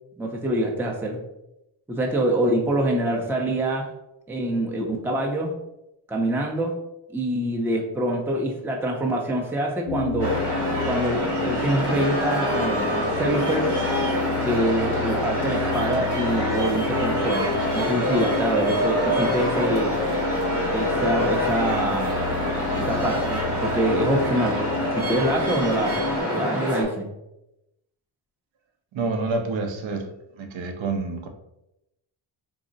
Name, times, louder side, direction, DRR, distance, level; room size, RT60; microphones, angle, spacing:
voice 1, 0.2-1.2 1.9-3.9 4.3-5.5 6.1-6.7 7.1-10.4 10.8-13.7 14.4-19.9 20.7-22.4 22.8-27.1, right 1 dB, 5° right, 1 dB, 0.5 m, -25 dB
sound 1, 9.9-26.2, left 4 dB, 75° left, 0.6 m, -31 dB
sound 2, 10.2-26.8, equal, 90° right, 1.1 m, -26 dB
voice 2, 28.9-30.1 30.3-31.3, right 3 dB, 65° right, 5 dB, 0.7 m, -28 dB
3.6 x 2.0 x 3.9 m, 0.90 s
cardioid pair, 80°, 49 cm